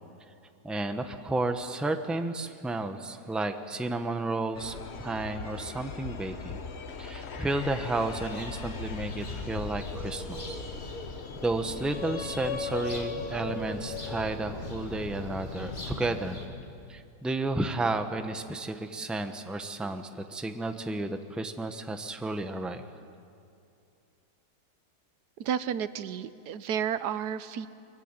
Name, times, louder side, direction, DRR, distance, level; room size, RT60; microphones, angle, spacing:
voice 1, 0.6-6.6 7.0-10.6 11.4-16.4 16.9-22.8, right 2 dB, ahead, 7 dB, 0.9 m, -32 dB
sound 1, 4.5-16.1, left 5 dB, 45° left, 1.2 m, -39 dB
sound 2, 7.6-16.5, left 1 dB, 30° left, 2.9 m, -41 dB
voice 2, 25.4-27.7, right 8 dB, 90° right, 13 dB, 1.4 m, -31 dB
23.5 x 22.5 x 9.1 m, 2.5 s
omnidirectional pair, 1.7 m